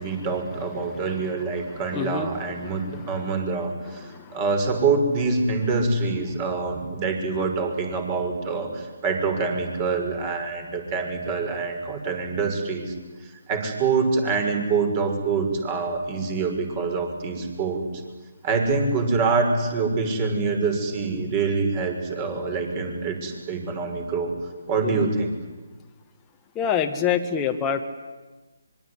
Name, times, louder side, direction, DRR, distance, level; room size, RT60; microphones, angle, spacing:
voice 1, 0.0-12.9 13.2-17.8 18.4-24.3 24.7-25.3, right 4 dB, 25° right, 5 dB, 6.0 m, -25 dB
voice 2, 1.9-2.3 2.9-3.0 4.1-4.4 24.8-25.1 26.6-27.8, left 8 dB, 15° left, 2 dB, 1.6 m, -26 dB
25.0 x 23.0 x 9.8 m, 1.2 s
figure-of-eight pair, 150°, 0 cm